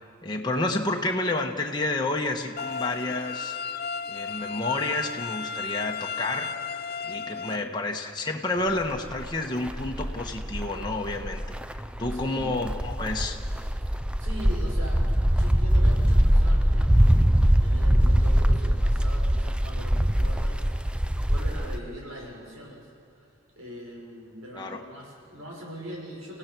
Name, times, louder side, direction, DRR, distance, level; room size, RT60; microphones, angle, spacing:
voice 1, 0.2-3.6 4.1-6.6 7.0-11.5 12.0-13.4 24.5-24.9, left 2 dB, 20° left, 1 dB, 1.3 m, -30 dB
sound 1, 2.6-7.6, left 5 dB, 50° left, 0.6 m, -34 dB
sound 2, 8.9-9.3 9.7-21.8, equal, 5° right, 0.5 m, -23 dB
voice 2, 12.1-12.6 14.2-20.7 21.2-22.9 23.1-23.3 23.6-26.4, equal, 85° right, -2 dB, 6.3 m, -41 dB
30.0 x 16.5 x 6.1 m, 2.5 s
head